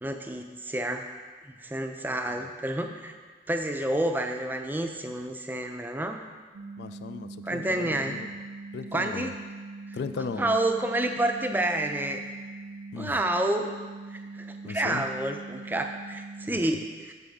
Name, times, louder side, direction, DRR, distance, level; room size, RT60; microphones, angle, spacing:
voice 1, 0.0-1.1 1.4-3.1 3.5-6.2 7.4-8.2 8.9-9.3 10.4-12.2 13.0-13.8 14.1-17.1, right 1 dB, 10° right, 4 dB, 0.4 m, -29 dB
sound 1, 6.5-16.5, right 3 dB, 85° right, 0.5 m, -42 dB
voice 2, 6.8-8.3 8.7-9.3 9.9-10.5 12.9-13.2 14.6-15.0 16.5-16.6, left 5 dB, 70° left, 11 dB, 0.3 m, -37 dB
9.0 x 6.9 x 3.6 m, 1.5 s
head